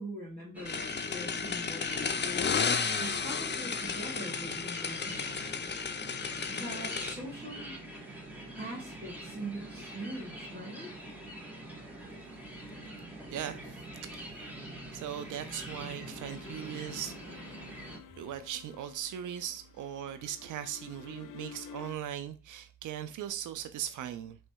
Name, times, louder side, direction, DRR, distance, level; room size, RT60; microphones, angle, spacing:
voice 1, 0.0-2.6 3.0-5.5 6.5-7.7 8.6-10.9 19.3-19.4, right 1 dB, 30° right, 1.8 m, -42 dB
sound 1, 0.5-18.0, right 1 dB, 5° right, 1.6 m, -44 dB
sound 2, 0.7-7.1, left 6 dB, 35° left, 0.6 m, -33 dB
voice 2, 13.3-14.4 14.9-17.1 18.2-24.4, right 10 dB, 75° right, 0.5 m, -39 dB
sound 3, 15.0-22.0, left 8 dB, 85° left, 0.5 m, -52 dB
3.3 x 3.1 x 4.5 m
cardioid pair, 60°, 31 cm